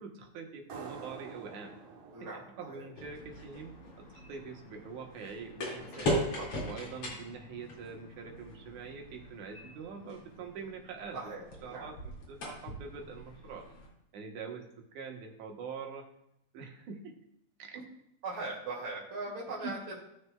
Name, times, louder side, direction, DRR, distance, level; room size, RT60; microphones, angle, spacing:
voice 1, 0.0-1.8 2.2-6.3 6.6-11.3 11.6-13.7 14.1-16.1 16.5-17.1 17.6-17.8 19.6-19.8, right 5 dB, 80° right, 2 dB, 2.6 m, -44 dB
sound 1, 0.7-4.0, right 5 dB, 60° right, 2.1 m, -49 dB
voice 2, 2.1-2.9 6.4-6.5 11.1-11.9 18.2-20.0, right 3 dB, 45° right, -5 dB, 2.8 m, -40 dB
sound 2, 3.0-13.9, equal, 50° left, 3.1 m, -40 dB
17.0 x 6.7 x 2.3 m, 0.80 s
omnidirectional pair, 3.4 m